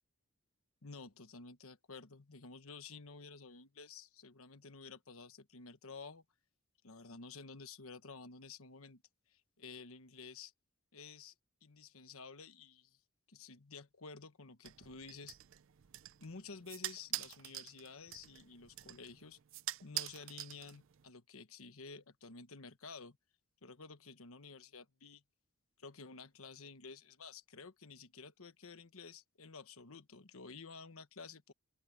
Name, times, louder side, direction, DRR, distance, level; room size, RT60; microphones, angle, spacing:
voice 1, 0.8-6.2 6.8-9.0 9.3-10.5 10.9-11.3 11.6-13.0 13.3-15.3 16.2-19.4 19.8-23.2 23.6-25.2 25.8-31.5, left 4 dB, 80° left, 1.2 m, -52 dB
sound 1, 14.6-21.1, right 15 dB, 65° right, 0.4 m, -46 dB
open air
head